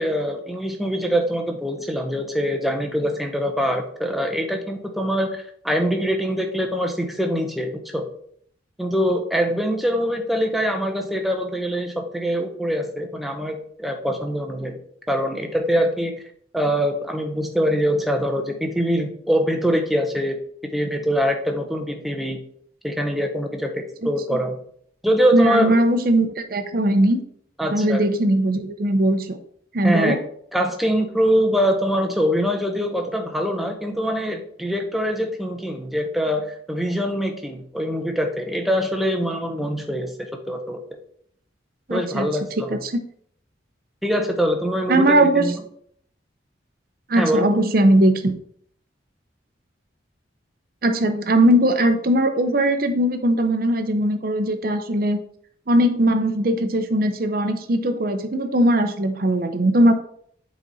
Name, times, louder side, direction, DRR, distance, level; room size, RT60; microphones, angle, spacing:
voice 1, 0.0-8.1 8.8-14.8 15.1-16.1 16.5-22.4 22.8-24.5 25.0-25.8 27.6-28.0 29.8-30.2 30.5-40.8 41.9-42.8 44.0-45.6 47.2-47.5, equal, ahead, 3 dB, 0.7 m, -23 dB
voice 2, 25.3-27.2 27.7-29.4 29.7-30.2 41.9-42.3 42.7-43.0 44.9-45.4 47.1-48.3 50.8-55.2 55.7-59.9, right 1 dB, 50° right, 8 dB, 0.7 m, -19 dB
7.6 x 4.1 x 4.1 m, 0.64 s
head